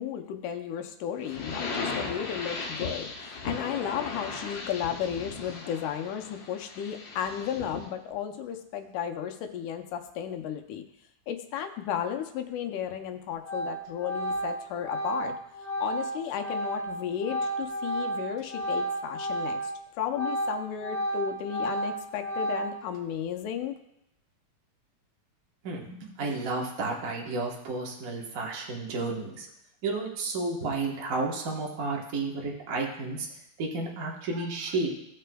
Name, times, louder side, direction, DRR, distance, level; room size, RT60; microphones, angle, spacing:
voice 1, 0.0-10.8 11.3-15.3 15.6-19.7 20.0-23.8, left 9 dB, 80° left, 6 dB, 2.2 m, -34 dB
sound 1, 1.2-7.9, left 4 dB, 55° left, 1.9 m, -37 dB
Organ, 12.9-13.1 13.4-19.8 20.1-23.0, right 1 dB, 15° right, 1.6 m, -32 dB
voice 2, 25.6-29.5 29.8-33.3 33.6-35.0, right 3 dB, 80° right, -2 dB, 0.7 m, -32 dB
16.5 x 6.7 x 2.3 m, 0.81 s
omnidirectional pair, 3.6 m